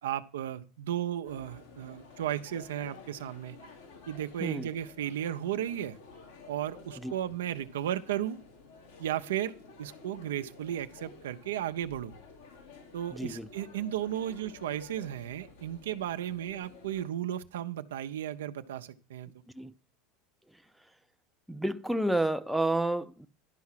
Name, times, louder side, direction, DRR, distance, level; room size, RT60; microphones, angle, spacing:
voice 1, 0.0-3.6 4.1-6.0 6.5-8.4 9.0-9.5 9.8-12.2 12.9-19.3, right 11 dB, 85° right, 0.6 m, -34 dB
sound 1, 1.2-17.1, left 4 dB, 85° left, 2.7 m, -52 dB
voice 2, 13.1-13.5 19.5-19.7 20.5-20.6 21.5-23.3, right 1 dB, ahead, 0.6 m, -30 dB
11.5 x 4.7 x 5.7 m
hypercardioid pair, 105°, 0 cm